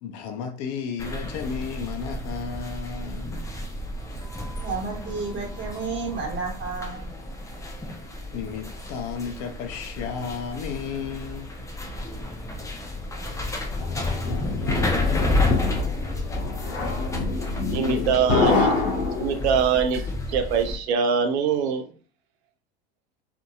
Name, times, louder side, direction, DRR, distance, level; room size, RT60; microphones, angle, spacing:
voice 1, 0.0-3.4 8.3-11.5 17.8-18.1, left 6 dB, 55° left, 0.6 m, -33 dB
sound 1, 1.0-20.8, left 2 dB, 10° left, 0.5 m, -31 dB
voice 2, 4.6-7.1 17.4-17.5, right 4 dB, 35° right, 1.3 m, -31 dB
sound 2, 13.8-19.7, left 3 dB, 90° left, 0.8 m, -26 dB
voice 3, 17.7-18.7 19.1-21.9, right 6 dB, 80° right, 0.6 m, -23 dB
2.6 x 2.6 x 2.3 m
hypercardioid pair, 85°, 32 cm